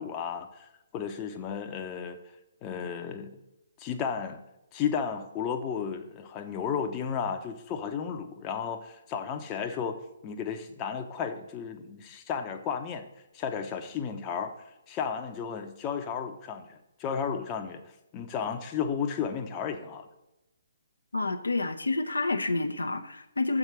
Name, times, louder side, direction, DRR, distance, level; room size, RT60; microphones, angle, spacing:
voice 1, 0.0-2.2 2.6-3.4 3.8-4.4 4.7-10.0 10.2-13.0 13.3-14.5 14.9-17.8 18.1-20.1, left 7 dB, 25° left, 5 dB, 0.7 m, -33 dB
voice 2, 21.1-23.6, left 3 dB, 80° left, 7 dB, 0.6 m, -29 dB
7.2 x 4.9 x 6.6 m, 0.95 s
figure-of-eight pair, 135°, 0 cm